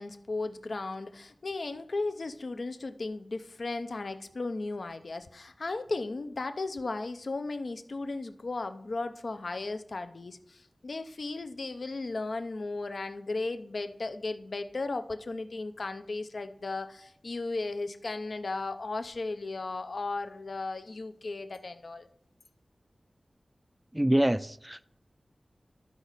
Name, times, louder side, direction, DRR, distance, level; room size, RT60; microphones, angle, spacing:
voice 1, 0.0-22.1, left 3 dB, 75° left, 0.5 m, -35 dB
voice 2, 23.9-24.8, right 1 dB, 15° right, 0.4 m, -26 dB
12.0 x 5.0 x 4.0 m
cardioid pair, 40°, 0 cm